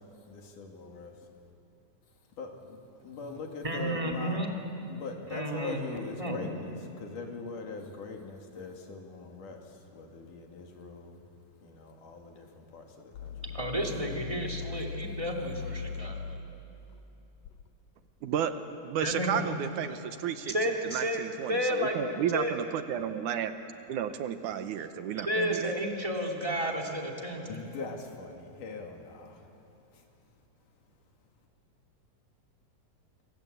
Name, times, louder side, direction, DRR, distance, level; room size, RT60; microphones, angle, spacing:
voice 1, 0.3-1.1 2.4-4.4 4.9-9.6 9.9-11.2 11.6-13.4 14.2-15.1 27.5-29.4, left 4 dB, 65° left, 2 dB, 3.9 m, -42 dB
voice 2, 3.6-4.5 5.3-6.5 13.5-16.4 19.0-19.4 20.5-22.6 25.3-27.6, equal, 10° right, 0 dB, 2.3 m, -32 dB
sound 1, 13.1-17.7, left 5 dB, 80° left, 1.4 m, -40 dB
voice 3, 18.2-18.5 18.8-23.5 23.9-25.7, right 9 dB, 70° right, 9 dB, 2.2 m, -32 dB
26.5 x 26.0 x 8.2 m, 2.8 s
omnidirectional pair, 3.9 m